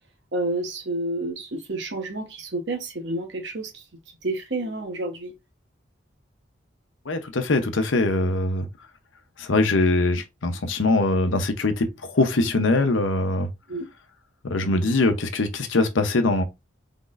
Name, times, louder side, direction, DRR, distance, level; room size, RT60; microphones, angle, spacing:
voice 1, 0.3-3.7 4.2-5.3 13.7-13.8, right 2 dB, 70° right, 1.2 m, -29 dB
voice 2, 7.1-8.7 9.4-13.5 14.4-16.4, left 2 dB, 90° left, 0.8 m, -22 dB
4.0 x 3.5 x 2.5 m
head